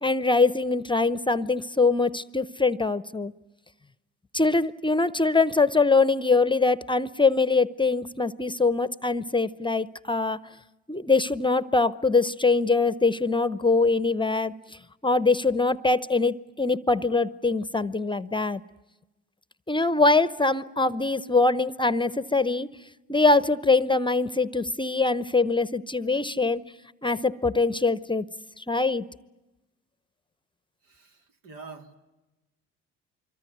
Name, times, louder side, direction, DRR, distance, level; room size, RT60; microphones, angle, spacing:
voice 1, 0.0-3.3 4.3-10.4 10.9-14.5 15.0-18.6 19.7-22.7 23.1-26.6 27.0-28.3 28.6-29.1, left 3 dB, 15° left, 17 dB, 0.9 m, -23 dB
voice 2, 30.8-32.0, right 4 dB, 75° right, 5 dB, 2.9 m, -45 dB
25.5 x 24.0 x 9.4 m, 1.1 s
hypercardioid pair, 60°, 34 cm